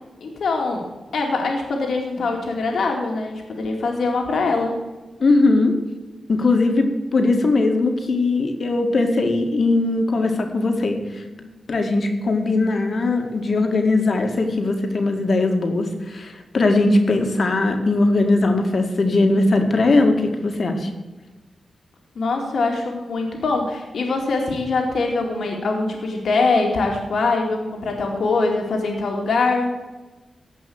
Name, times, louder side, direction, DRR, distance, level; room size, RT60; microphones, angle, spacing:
voice 1, 0.2-0.9 1.1-4.8 22.2-29.7, left 3 dB, 80° left, 1 dB, 2.4 m, -23 dB
voice 2, 5.2-5.7 6.3-20.9, left 2 dB, 55° left, 4 dB, 2.0 m, -20 dB
15.5 x 5.6 x 7.8 m, 1.2 s
wide cardioid pair, 90°, 0 cm